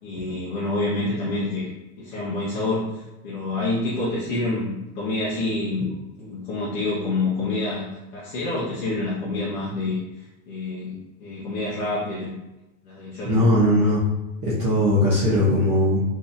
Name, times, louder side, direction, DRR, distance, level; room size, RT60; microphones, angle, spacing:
voice 1, 0.0-1.7 2.0-5.9 6.2-10.0 10.5-12.3 12.8-13.5, left 2 dB, 35° left, -8 dB, 0.6 m, -27 dB
voice 2, 13.2-14.0 14.4-16.0, left 1 dB, 20° right, -10 dB, 0.4 m, -19 dB
3.5 x 2.7 x 2.4 m, 0.96 s
supercardioid pair, 175°, 42 cm